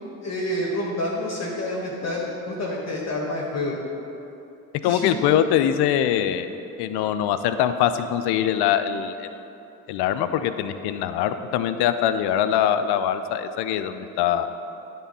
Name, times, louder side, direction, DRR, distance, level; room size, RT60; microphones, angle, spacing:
voice 1, 0.2-3.8 4.8-5.1, left 1 dB, 35° left, -4 dB, 1.5 m, -28 dB
voice 2, 4.8-6.5 6.8-9.3 9.9-14.5, left 10 dB, 65° left, 10 dB, 0.6 m, -23 dB
10.0 x 3.7 x 5.4 m, 2.9 s
hypercardioid pair, 55°, 43 cm